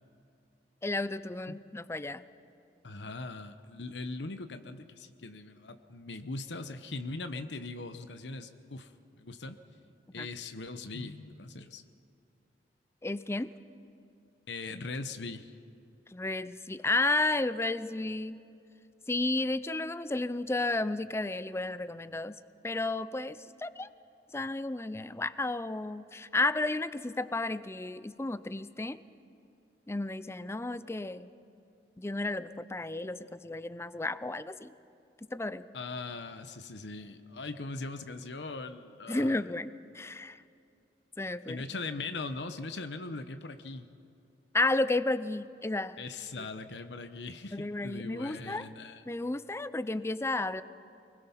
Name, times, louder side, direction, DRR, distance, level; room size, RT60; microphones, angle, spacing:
voice 1, 0.8-2.2 10.2-10.3 13.0-13.5 14.7-14.8 16.1-18.4 19.1-22.4 22.6-23.9 24.3-29.0 29.9-31.3 32.0-34.7 35.2-35.7 39.1-40.4 41.2-41.7 44.5-46.0 47.5-48.7 49.1-50.6, left 2 dB, 15° left, 15 dB, 0.5 m, -32 dB
voice 2, 2.8-9.6 10.1-11.8 14.5-15.5 35.7-39.5 41.5-43.9 46.0-49.0, left 3 dB, 85° left, 9 dB, 1.0 m, -40 dB
24.5 x 20.5 x 5.7 m, 2.7 s
head